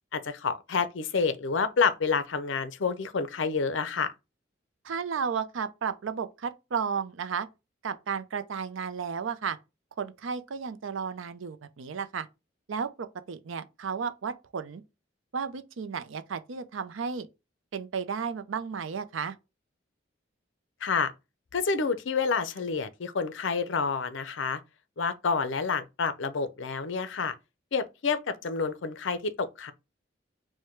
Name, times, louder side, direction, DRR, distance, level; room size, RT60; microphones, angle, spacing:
voice 1, 0.1-4.1 20.8-21.1 21.5-24.6 25.0-27.3 27.7-29.7, left 5 dB, 75° left, 0.5 m, -28 dB
voice 2, 4.8-7.5 7.8-9.6 10.0-12.3 12.7-14.8 15.3-17.3 17.7-19.4, right 6 dB, 85° right, 0.5 m, -33 dB
4.8 x 2.2 x 4.4 m
head